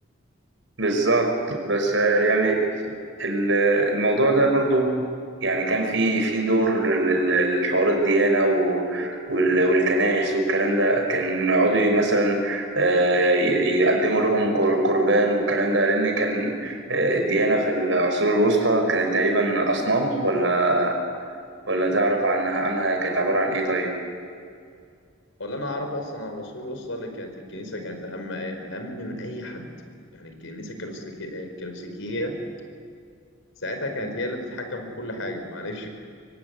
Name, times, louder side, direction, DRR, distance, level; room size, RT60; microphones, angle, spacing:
voice 1, 0.8-2.7 3.2-4.9 5.4-21.0 21.7-23.9, right 2 dB, 70° right, 3 dB, 5.7 m, -21 dB
voice 2, 25.4-29.7 30.1-32.4 33.6-35.9, left 1 dB, 80° left, 5 dB, 4.8 m, -33 dB
25.5 x 24.0 x 9.6 m, 2.2 s
head